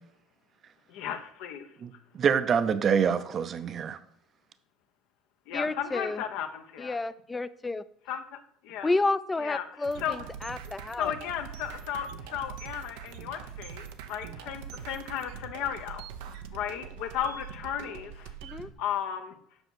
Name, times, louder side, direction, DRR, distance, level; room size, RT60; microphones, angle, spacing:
voice 1, 0.9-1.7 5.5-7.0 8.1-8.9 9.4-9.7 10.0-10.2 11.0-18.3 18.8-19.3, left 9 dB, 75° left, 1.1 m, -35 dB
voice 2, 1.8-4.0, right 7 dB, 40° right, 0.7 m, -26 dB
voice 3, 5.5-6.2 6.8-7.8 8.8-11.1 18.4-18.7, left 2 dB, 15° left, 0.5 m, -30 dB
sound 1, 9.8-18.7, right 8 dB, 90° right, 0.9 m, -43 dB
8.0 x 5.6 x 6.2 m
cardioid pair, 120°, 0 cm